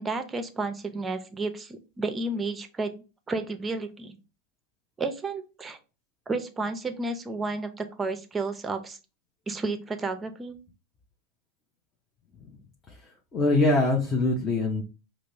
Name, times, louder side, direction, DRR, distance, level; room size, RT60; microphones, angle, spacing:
voice 1, 0.0-4.2 5.0-5.8 6.3-9.0 9.5-10.6, right 3 dB, 15° right, 8 dB, 0.6 m, -32 dB
voice 2, 13.3-14.8, left 2 dB, 25° left, 0 dB, 0.8 m, -23 dB
5.0 x 2.0 x 3.0 m, 0.31 s
supercardioid pair, 120°, 0 cm